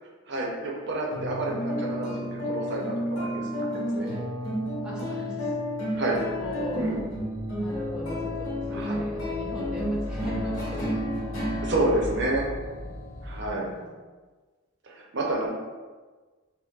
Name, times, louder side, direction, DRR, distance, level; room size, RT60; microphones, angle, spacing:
voice 1, 0.3-3.5 3.9-4.1 5.9-6.2 6.7-7.0 8.7-8.9 11.6-12.5 13.2-13.7 14.8-15.5, right 2 dB, 55° right, -2 dB, 0.6 m, -29 dB
sound 1, 1.1-13.9, equal, 70° left, 1.1 m, -32 dB
voice 2, 4.0-4.3 4.8-5.6 5.9-7.1 7.5-11.1 11.3-11.6 13.4-14.0, equal, 5° right, -6 dB, 0.3 m, -39 dB
sound 2, 6.0-13.5, equal, 45° left, 1.0 m, -39 dB
4.4 x 2.1 x 2.3 m, 1.4 s
head